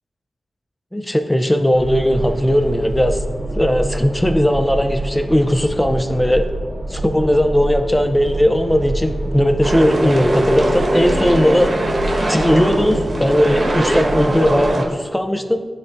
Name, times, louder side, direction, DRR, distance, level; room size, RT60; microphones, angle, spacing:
voice 1, 0.9-3.2 3.5-6.5 6.9-11.8 12.1-15.7, equal, 10° left, 6 dB, 0.5 m, -17 dB
sound 1, 1.7-14.7, right 1 dB, 15° right, 1.2 m, -27 dB
sound 2, 9.6-14.8, right 1 dB, 55° right, 1.0 m, -20 dB
10.5 x 3.7 x 2.6 m, 1.5 s
wide cardioid pair, 70°, 0 cm